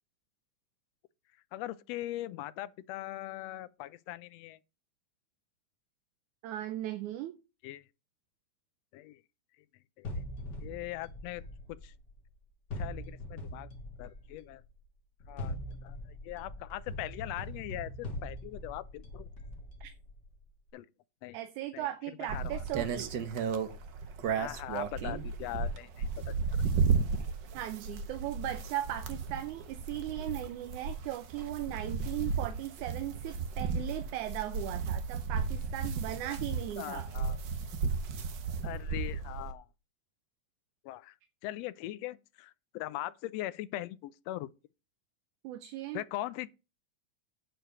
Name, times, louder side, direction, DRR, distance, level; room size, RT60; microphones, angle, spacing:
voice 1, 1.5-4.6 7.6-7.8 8.9-9.2 10.0-10.1 10.6-11.4 11.7-11.9 12.7-13.7 14.0-14.6 15.3-19.3 20.7-20.9 21.2-21.4 21.7-21.9 22.2-22.6 24.4-26.3 36.8-37.4 38.6-39.7 40.8-41.2 41.4-44.5 45.9-46.5, left 15 dB, 75° left, 1.6 m, -40 dB
voice 2, 6.4-7.4 19.8-19.9 21.3-23.1 27.5-37.1 45.4-46.0, right 13 dB, 85° right, 2.2 m, -38 dB
sound 1, 10.0-12.2 12.7-14.5 15.2-20.3, left 1 dB, 40° left, 2.1 m, -42 dB
sound 2, 22.3-39.5, right 5 dB, 65° right, 1.1 m, -34 dB
9.1 x 4.8 x 6.7 m
omnidirectional pair, 3.4 m